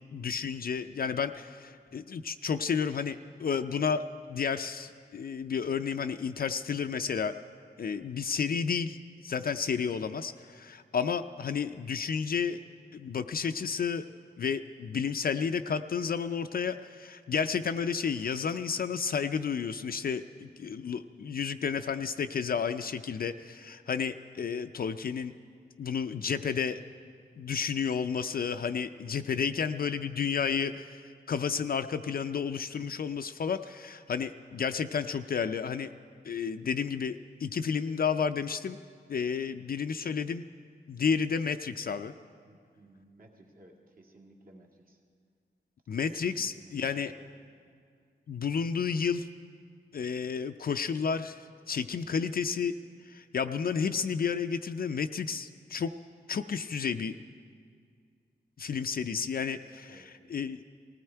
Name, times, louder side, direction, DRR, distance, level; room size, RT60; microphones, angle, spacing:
voice 1, 0.1-7.3 7.8-9.0 9.2-12.6 12.9-14.0 14.4-25.3 25.8-26.8 27.4-31.0 31.3-35.9 36.2-38.8 39.1-40.4 40.9-42.1 45.9-47.1 48.3-49.3 49.9-52.7 53.1-55.9 56.3-57.2 58.6-60.6, left 6 dB, 55° left, 8 dB, 0.4 m, -31 dB
voice 2, 29.3-29.9 30.2-30.3 42.4-45.0 46.2-47.3 59.8-60.1, right 1 dB, 50° right, 0 dB, 1.9 m, -57 dB
19.0 x 16.0 x 4.5 m, 2.1 s
wide cardioid pair, 115°, 18 cm